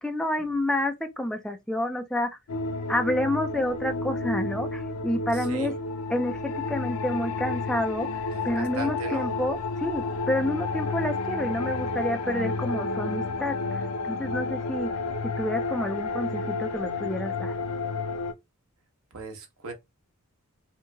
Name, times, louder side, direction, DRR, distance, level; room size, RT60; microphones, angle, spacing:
voice 1, 0.0-2.3 2.9-5.7 6.1-8.1 8.4-13.8 14.1-14.9 15.4-17.5, left 1 dB, 5° left, 0.3 m, -29 dB
sound 1, 2.5-18.3, left 3 dB, 85° left, 0.4 m, -31 dB
voice 2, 5.3-5.8 8.3-9.3 19.1-19.7, right 2 dB, 75° right, 0.9 m, -38 dB
2.9 x 2.8 x 2.2 m
head